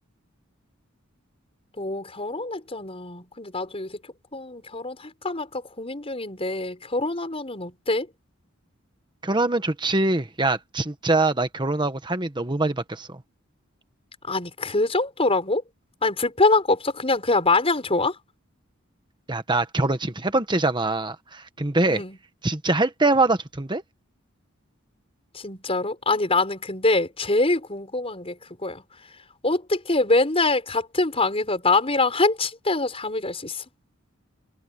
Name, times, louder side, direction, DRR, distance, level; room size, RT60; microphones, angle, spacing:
voice 1, 1.8-4.0 4.3-8.1 14.2-15.6 16.0-18.2 21.9-22.2 25.3-28.8 29.4-33.6, left 2 dB, 30° left, 5.5 m, -24 dB
voice 2, 9.2-13.2 19.3-22.0 22.4-23.8, right 2 dB, 20° right, 1.4 m, -23 dB
head